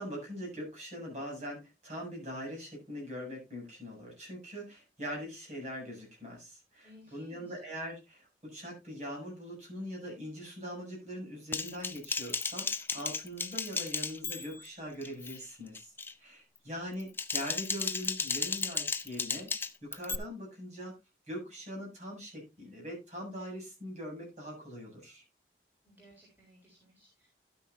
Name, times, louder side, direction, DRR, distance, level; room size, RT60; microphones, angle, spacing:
voice 1, 0.0-15.9 16.2-19.5 19.8-20.9 21.3-25.2, equal, 40° right, -2 dB, 7.5 m, -42 dB
voice 2, 6.8-7.5 25.8-27.3, equal, 10° right, -3 dB, 3.8 m, -58 dB
Typing, 11.5-14.7 15.0-15.4 15.7-16.1 16.9-20.1, left 4 dB, 10° left, 0.5 m, -34 dB
12.5 x 9.5 x 2.7 m, 0.23 s
head